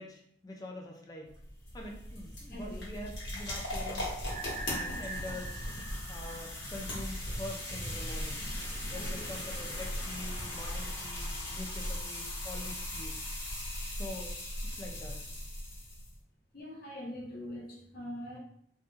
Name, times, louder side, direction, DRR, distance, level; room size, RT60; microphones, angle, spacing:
voice 1, 0.0-1.3 1.7-4.2 4.7-5.6 6.1-8.5 8.9-13.2 14.0-14.3 14.6-15.2, left 1 dB, 20° left, 1 dB, 0.4 m, -45 dB
sound 1, 1.3-16.1, left 1 dB, 85° left, 1.1 m, -38 dB
voice 2, 2.5-2.8 8.9-9.2 16.5-18.4, left 1 dB, 55° left, -3 dB, 0.7 m, -43 dB
sound 2, 4.3-7.1, right 3 dB, 55° right, 0.4 m, -43 dB
2.2 x 2.1 x 3.0 m, 0.66 s
head